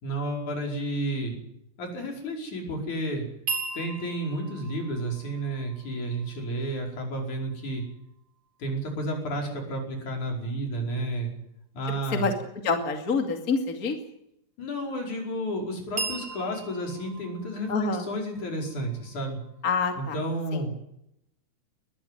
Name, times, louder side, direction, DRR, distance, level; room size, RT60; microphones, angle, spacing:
voice 1, 0.0-1.4 1.8-3.3 3.7-7.8 8.6-11.3 11.7-12.3 14.6-19.4 20.0-20.8, right 1 dB, 70° left, 2 dB, 6.6 m, -31 dB
sound 1, 3.5-7.5 16.0-19.8, right 4 dB, 40° right, 5.5 m, -38 dB
voice 2, 12.6-14.0 17.7-18.0 19.6-20.2 20.5-20.8, left 4 dB, 30° left, 5 dB, 2.4 m, -26 dB
21.5 x 14.0 x 9.2 m, 0.78 s
omnidirectional pair, 3.6 m